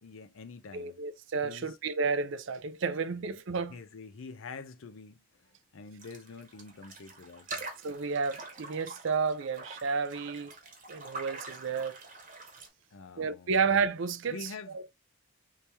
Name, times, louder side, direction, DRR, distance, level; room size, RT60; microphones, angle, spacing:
voice 1, 0.0-1.0 1.4-1.8 3.1-3.2 3.7-5.5 5.7-7.7 12.9-13.6 14.3-14.9, left 4 dB, 70° left, 0.5 m, -46 dB
voice 2, 0.7-3.8 7.8-10.6 10.9-12.0 13.2-14.5 14.7-14.9, right 5 dB, 65° right, 0.4 m, -31 dB
sound 1, 6.0-12.7, right 3 dB, 40° right, 1.0 m, -45 dB
3.0 x 2.8 x 3.4 m
head